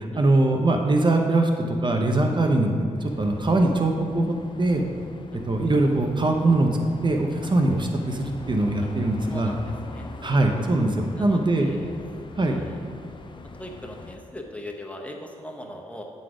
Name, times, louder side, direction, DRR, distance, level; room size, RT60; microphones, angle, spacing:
voice 1, 0.1-2.7 3.0-4.8 5.3-6.7 7.0-9.5 10.2-11.7 12.4-12.6, right 2 dB, 40° right, 3 dB, 0.8 m, -22 dB
sound 1, 3.0-14.2, left 3 dB, 40° left, 0.6 m, -41 dB
voice 2, 9.3-10.1 11.1-12.0 12.5-12.8 13.6-16.0, left 1 dB, 10° left, 1 dB, 0.9 m, -40 dB
9.0 x 4.1 x 4.9 m, 2.2 s
cardioid pair, 60°, 13 cm